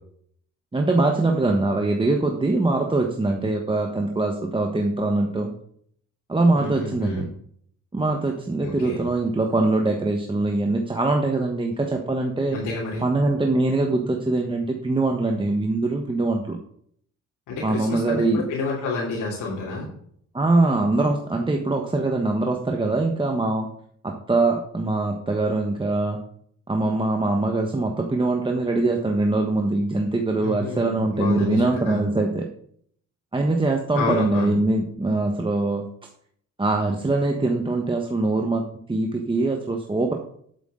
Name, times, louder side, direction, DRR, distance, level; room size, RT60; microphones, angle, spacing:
voice 1, 0.7-5.5 6.3-7.3 7.9-12.6 13.0-16.6 17.6-18.4 20.3-23.7 24.0-26.2 26.7-32.5 33.3-35.8 36.6-40.1, right 2 dB, 15° right, 2 dB, 1.3 m, -23 dB
voice 2, 6.5-7.2 8.6-9.0 12.5-13.0 17.5-19.9 30.4-32.0 33.9-34.6, left 3 dB, 80° left, -5 dB, 3.3 m, -29 dB
11.5 x 8.4 x 3.8 m, 0.64 s
cardioid pair, 90°, 30 cm